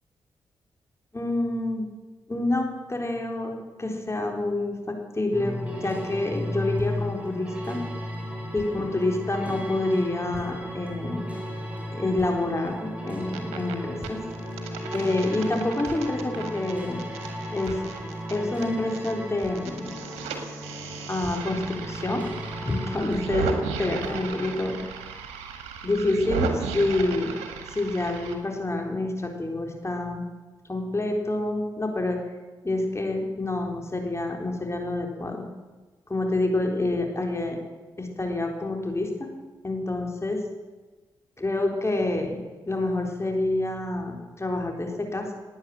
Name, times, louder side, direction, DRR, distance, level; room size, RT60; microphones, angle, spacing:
voice 1, 1.1-1.9 2.3-7.8 8.5-11.2 11.9-14.2 14.9-17.0 17.5-17.8 18.3-19.9 21.1-22.3 22.6-23.5 23.8-24.8 25.8-27.3 27.7-30.2 30.7-32.2 32.6-35.4 36.1-37.6 38.0-39.3 39.6-40.4 41.4-45.3, left 2 dB, 25° left, 2 dB, 3.8 m, -27 dB
sound 1, 5.3-24.6, equal, 15° right, 5.2 m, -35 dB
sound 2, 13.1-13.7 14.0-19.1 19.4-28.3, right 5 dB, 90° right, 1.6 m, -35 dB
17.5 x 9.5 x 7.8 m, 1.3 s
supercardioid pair, 40°, 10 cm